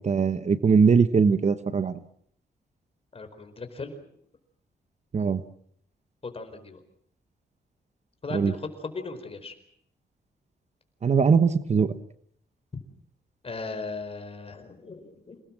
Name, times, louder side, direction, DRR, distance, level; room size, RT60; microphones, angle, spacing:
voice 1, 0.0-1.9 5.1-5.4 8.3-8.5 11.0-11.9, right 5 dB, 40° right, 12 dB, 1.2 m, -21 dB
voice 2, 3.1-4.0 6.2-6.8 8.2-9.5 13.4-15.4, left 3 dB, 35° left, 7 dB, 4.7 m, -37 dB
28.0 x 19.5 x 7.5 m, 0.65 s
wide cardioid pair, 125°, 17 cm